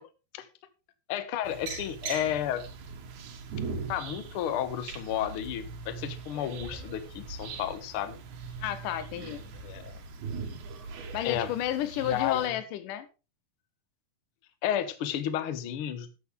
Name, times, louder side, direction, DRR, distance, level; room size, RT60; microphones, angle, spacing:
voice 1, 1.1-2.6 3.9-8.2 9.6-9.9 11.2-11.5 12.0-12.6 14.6-16.1, left 10 dB, 60° left, 1.5 m, -32 dB
sound 1, 1.4-12.5, right 5 dB, 70° right, 2.8 m, -40 dB
voice 2, 8.6-9.4 11.1-13.1, left 12 dB, 80° left, 2.5 m, -31 dB
11.5 x 8.7 x 3.7 m
omnidirectional pair, 3.7 m